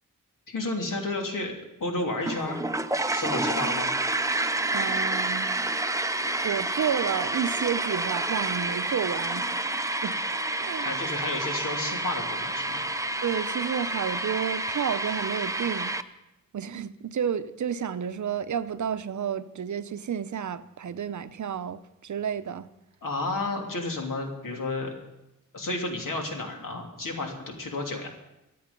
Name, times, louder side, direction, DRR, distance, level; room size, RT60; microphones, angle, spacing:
voice 1, 0.5-1.5 1.8-2.7 3.1-3.9 10.8-12.8 23.0-24.9 25.5-28.1, left 2 dB, 75° left, 1 dB, 3.0 m, -31 dB
sound 1, 2.2-16.0, right 2 dB, 10° right, 0.5 m, -29 dB
voice 2, 4.7-5.5 6.4-9.5 10.0-11.0 13.2-15.9 16.5-22.7, right 8 dB, 60° right, 12 dB, 0.7 m, -31 dB
24.0 x 8.7 x 5.2 m, 0.93 s
wide cardioid pair, 135°, 32 cm